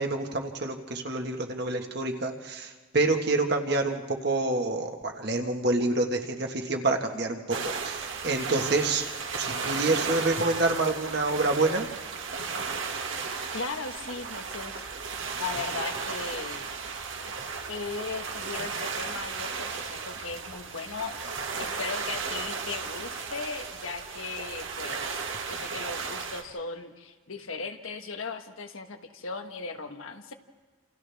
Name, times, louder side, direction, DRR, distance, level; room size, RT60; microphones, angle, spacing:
voice 1, 0.0-9.1 9.4-11.9, right 2 dB, 50° right, 3 dB, 1.6 m, -27 dB
sound 1, 7.5-26.4, right 5 dB, 75° right, 1.9 m, -35 dB
voice 2, 13.5-14.8 15.4-16.7 17.7-21.2 21.6-30.3, left 4 dB, 90° left, 5 dB, 1.5 m, -37 dB
29.0 x 28.0 x 3.5 m, 1.4 s
head